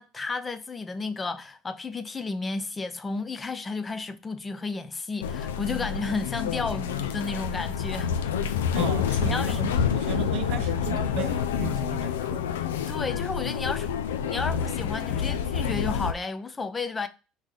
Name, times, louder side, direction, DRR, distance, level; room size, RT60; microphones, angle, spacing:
voice 1, 0.0-8.1 9.2-9.6 12.9-13.9 14.2-17.1, left 3 dB, 25° left, 0.6 m, -32 dB
sound 1, 5.2-16.1, left 8 dB, 85° left, 0.4 m, -28 dB
voice 2, 8.7-12.4, right 12 dB, 65° right, 0.5 m, -35 dB
4.3 x 3.2 x 3.7 m
hypercardioid pair, 75°, 0 cm